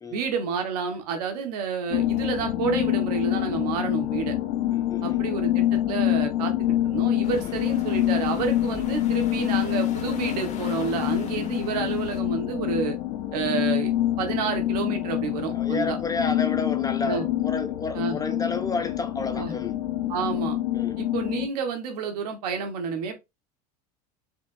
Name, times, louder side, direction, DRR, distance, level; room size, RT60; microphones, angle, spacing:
voice 1, 0.1-4.3 5.0-6.5 6.8-13.0 13.3-13.9 14.2-16.0 17.0-17.3 17.9-18.2 19.4-19.5 20.1-20.6 21.0-23.1, right 6 dB, 80° right, 1.4 m, -29 dB
sound 1, 1.9-21.5, left 13 dB, 70° left, 0.8 m, -26 dB
voice 2, 4.7-5.2 7.5-7.6 15.5-19.8 20.7-21.0, left 3 dB, 20° left, 0.7 m, -31 dB
sound 2, 7.2-12.2, left 6 dB, 35° left, 1.1 m, -43 dB
4.9 x 3.5 x 2.6 m
supercardioid pair, 100°, 20 cm